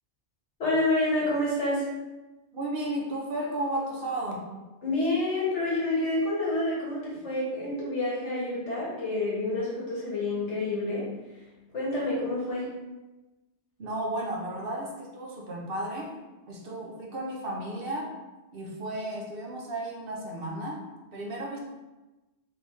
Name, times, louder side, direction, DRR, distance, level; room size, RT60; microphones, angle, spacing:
voice 1, 0.6-1.9 4.8-11.1 11.7-12.7, left 2 dB, 80° left, -6 dB, 1.6 m, -28 dB
voice 2, 2.5-4.5 13.8-16.1 16.5-18.1 18.5-20.8 21.1-21.6, right 1 dB, 55° right, -2 dB, 1.0 m, -33 dB
3.5 x 3.4 x 3.1 m, 1.1 s
omnidirectional pair, 1.2 m